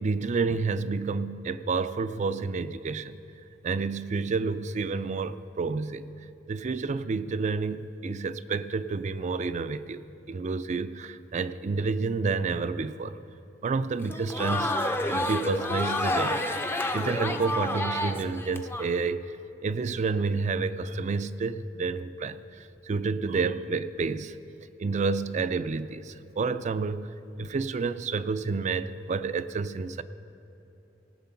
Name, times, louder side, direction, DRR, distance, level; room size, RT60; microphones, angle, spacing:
voice 1, 0.0-3.2 3.6-6.0 6.5-13.2 13.6-19.2 19.6-24.4 24.8-30.0, right 4 dB, 40° right, 13 dB, 0.4 m, -30 dB
Crowd, 14.0-18.9, left 1 dB, 15° left, 0.6 m, -29 dB
18.5 x 7.6 x 5.7 m, 2.9 s
head